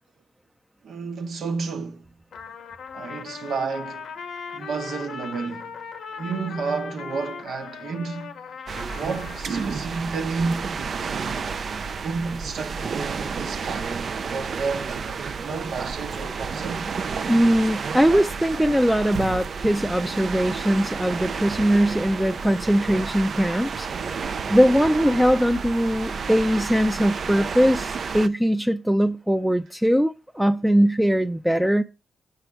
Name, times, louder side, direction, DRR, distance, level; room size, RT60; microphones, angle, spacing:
voice 1, 0.8-2.1 2.9-4.1 4.5-5.7 6.2-8.4 9.0-11.5 12.0-14.0 14.3-16.9, right 4 dB, 75° right, 1.1 m, -31 dB
Trumpet, 2.3-10.2, left 6 dB, 85° left, 0.7 m, -38 dB
sound 1, 8.7-28.3, right 5 dB, 60° right, 0.4 m, -31 dB
voice 2, 17.3-23.9 24.5-31.8, equal, 5° right, 0.4 m, -21 dB
7.0 x 5.7 x 3.3 m
cardioid pair, 60°, 0 cm